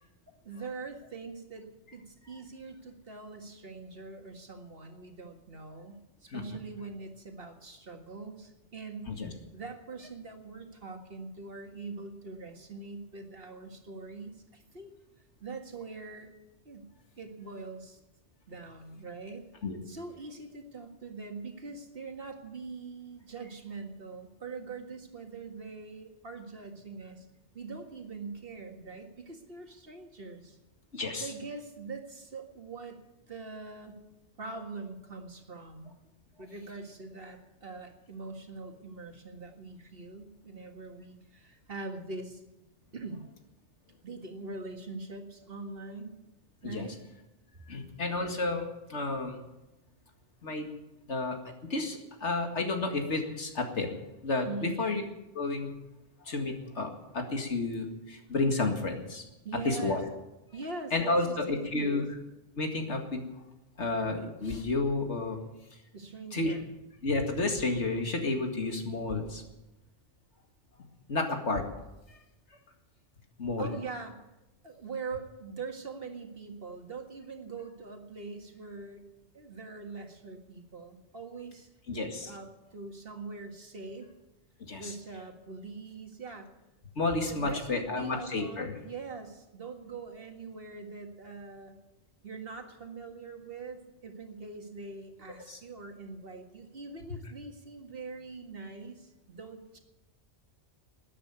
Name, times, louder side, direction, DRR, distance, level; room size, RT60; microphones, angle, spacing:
voice 1, 0.4-9.2 9.5-14.9 15.4-16.3 16.7-16.9 17.2-18.0 18.5-19.5 19.9-27.3 27.5-30.6 31.2-33.0 33.3-34.0 34.4-35.9 36.4-42.4 42.9-43.3 44.0-46.2 46.6-46.9 54.4-54.8 59.4-60.1 60.5-62.1 65.9-66.7 73.6-74.2 74.6-79.1 79.3-84.1 84.8-86.5 87.1-91.8 92.2-99.8, right 4 dB, 55° right, 4 dB, 2.0 m, -43 dB
voice 2, 30.9-31.3 46.6-46.9 47.7-49.4 50.4-50.7 51.1-51.4 51.6-53.9 54.2-55.0 55.3-55.7 56.2-59.2 59.6-60.0 60.9-62.1 62.6-63.3 63.8-65.4 66.3-66.6 67.0-69.4 71.1-71.6 72.1-72.2 73.4-73.7 81.9-82.3 84.7-84.9 87.0-88.7 95.5-95.6, left 3 dB, 80° left, 4 dB, 2.4 m, -31 dB
13.5 x 9.8 x 9.6 m, 0.97 s
omnidirectional pair, 1.2 m